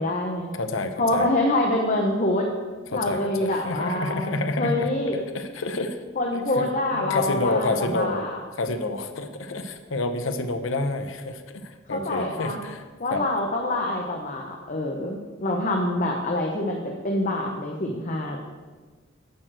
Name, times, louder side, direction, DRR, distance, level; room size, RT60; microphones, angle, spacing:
voice 1, 0.0-0.5 1.0-2.5 2.9-5.2 6.2-8.4 11.9-12.6 13.0-16.8 17.0-18.4, left 1 dB, 40° left, 1 dB, 0.9 m, -26 dB
voice 2, 0.6-1.3 2.9-6.0 6.3-6.7 6.9-8.2 8.5-12.8 13.1-13.2, left 2 dB, 80° left, 7 dB, 0.7 m, -29 dB
10.5 x 4.5 x 7.7 m, 1.4 s
head